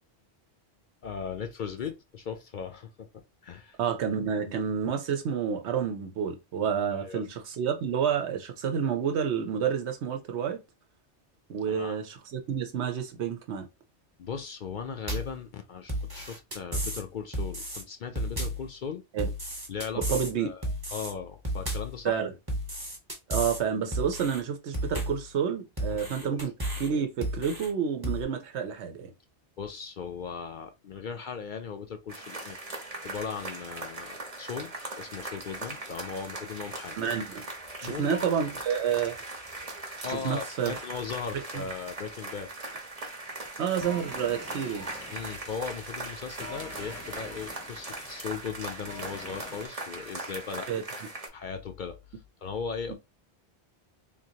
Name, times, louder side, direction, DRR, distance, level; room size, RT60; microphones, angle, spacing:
voice 1, 1.0-3.8 6.9-7.2 11.7-12.0 14.2-19.0 19.7-22.1 25.9-26.4 29.6-32.6 33.0-37.0 37.8-38.2 40.0-42.5 45.1-50.7 51.3-52.0 52.4-52.9, left 6 dB, 55° left, 0.6 m, -38 dB
voice 2, 3.8-10.6 11.5-13.7 19.1-19.3 20.0-20.5 22.0-22.3 23.3-29.1 37.0-37.4 37.8-39.2 40.1-40.7 41.5-41.6 43.6-44.9 50.7-50.8 52.9-53.0, right 7 dB, 75° right, 1.0 m, -29 dB
sound 1, 15.1-15.4 15.9-17.0 17.3-17.8 18.2-18.7 19.2-20.3 20.6-21.1 21.4-22.0 22.5-23.6 23.9-24.4 24.7-25.3 25.8-26.9 27.2-27.7 28.0-28.2, equal, 20° right, 1.0 m, -33 dB
sound 2, 32.1-51.3, right 2 dB, 35° right, 0.9 m, -40 dB
sound 3, 43.0-49.7, left 1 dB, 15° left, 0.7 m, -45 dB
3.8 x 2.6 x 2.8 m
omnidirectional pair, 1.1 m